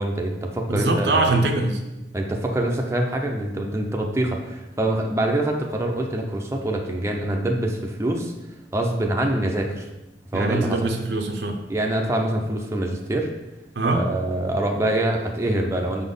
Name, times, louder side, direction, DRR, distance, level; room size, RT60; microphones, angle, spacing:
voice 1, 0.0-1.3 2.1-8.3 8.7-9.9 10.3-10.9 11.7-13.3 13.9-16.1, right 1 dB, 15° right, 1 dB, 0.6 m, -25 dB
voice 2, 0.7-1.8 10.3-11.6 13.7-14.0, right 2 dB, 80° right, 3 dB, 0.8 m, -22 dB
5.8 x 4.1 x 5.4 m, 1.0 s
head